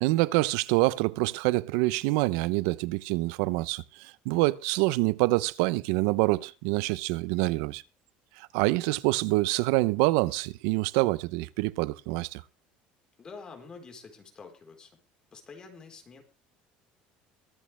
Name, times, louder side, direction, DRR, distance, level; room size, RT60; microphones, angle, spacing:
voice 1, 0.0-7.8 8.4-12.4, right 21 dB, 90° right, 0.7 m, -26 dB
voice 2, 13.2-14.9 15.3-16.2, left 4 dB, 25° left, 4.1 m, -47 dB
23.0 x 8.6 x 3.3 m
cardioid pair, 140°, 3 cm